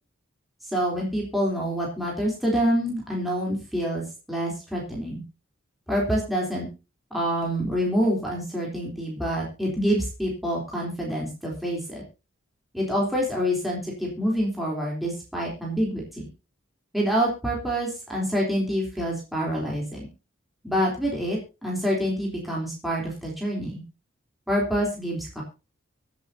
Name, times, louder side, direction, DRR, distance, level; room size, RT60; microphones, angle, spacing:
voice 1, 0.7-5.2 5.9-6.7 7.1-12.0 12.7-16.3 16.9-20.1 20.6-23.8 24.5-25.4, equal, ahead, -4 dB, 3.6 m, -27 dB
24.0 x 8.1 x 2.8 m, 0.29 s
head